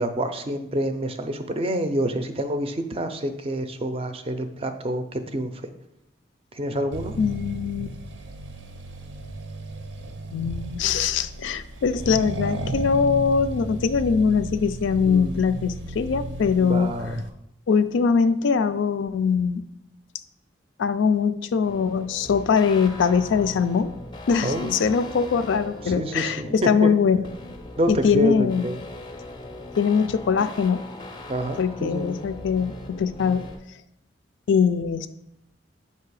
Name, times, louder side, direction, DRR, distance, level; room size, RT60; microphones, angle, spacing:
voice 1, 0.0-5.7 6.5-7.1 15.0-15.4 16.6-17.2 24.4-24.7 25.8-26.9 27.8-28.8 31.3-32.2, equal, 30° right, 8 dB, 0.4 m, -27 dB
Accelerating revving vroom, 6.9-17.3, right 2 dB, 90° right, 0.7 m, -34 dB
voice 2, 7.2-8.0 10.3-16.9 17.7-19.6 20.8-23.9 24.3-27.2 27.9-28.7 29.8-30.8 31.6-33.5 34.5-35.1, left 6 dB, 85° left, 11 dB, 0.3 m, -22 dB
sound 1, 21.6-33.6, left 1 dB, 25° left, 0.5 m, -40 dB
7.4 x 2.8 x 4.7 m, 0.84 s
head